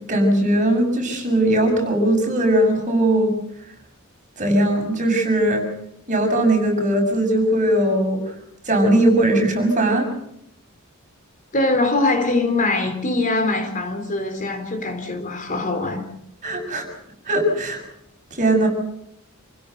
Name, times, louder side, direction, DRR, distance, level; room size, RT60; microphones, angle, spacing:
voice 1, 0.1-3.3 4.4-5.6 6.1-8.2 8.7-10.1 16.4-16.8 17.3-17.8 18.4-18.7, right 1 dB, 35° right, 6.8 m, -19 dB
voice 2, 11.5-16.0, left 2 dB, 40° left, 3.7 m, -22 dB
28.5 x 16.5 x 6.6 m
head